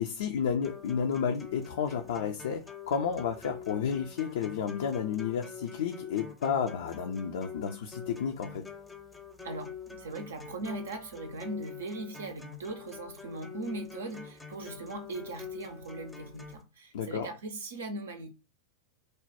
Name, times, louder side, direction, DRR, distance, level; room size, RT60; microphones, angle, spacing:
voice 1, 0.0-8.6 16.9-17.3, left 7 dB, 60° left, 0.5 m, -31 dB
sound 1, 0.6-16.6, left 6 dB, 5° left, 0.6 m, -46 dB
voice 2, 9.4-18.3, right 2 dB, 65° right, 0.5 m, -39 dB
3.3 x 2.2 x 4.1 m
figure-of-eight pair, 90°, 0 cm